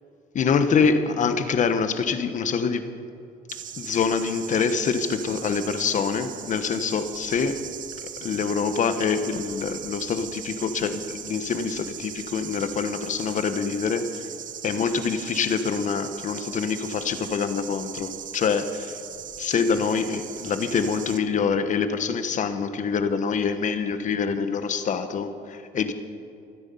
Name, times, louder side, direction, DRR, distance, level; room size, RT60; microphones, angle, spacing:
voice 1, 0.3-2.8 3.8-7.6 8.2-14.2 14.6-19.0 19.4-25.9, left 5 dB, 50° left, 10 dB, 1.3 m, -25 dB
sound 1, 3.5-21.2, right 9 dB, 50° right, 1.0 m, -39 dB
25.5 x 9.9 x 5.5 m, 2.6 s
cardioid pair, 110°, 17 cm